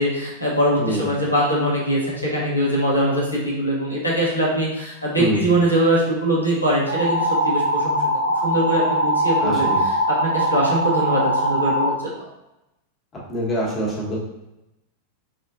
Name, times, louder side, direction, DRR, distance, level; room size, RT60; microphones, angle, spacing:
voice 1, 0.0-9.9 10.2-12.1, right 1 dB, 85° left, -5 dB, 1.2 m, -22 dB
sound 1, 6.9-11.9, right 1 dB, 80° right, 0.5 m, -21 dB
voice 2, 9.4-9.8 13.3-14.2, equal, 25° left, -5 dB, 1.5 m, -24 dB
4.7 x 3.2 x 2.6 m, 0.94 s
figure-of-eight pair, 90°, 0 cm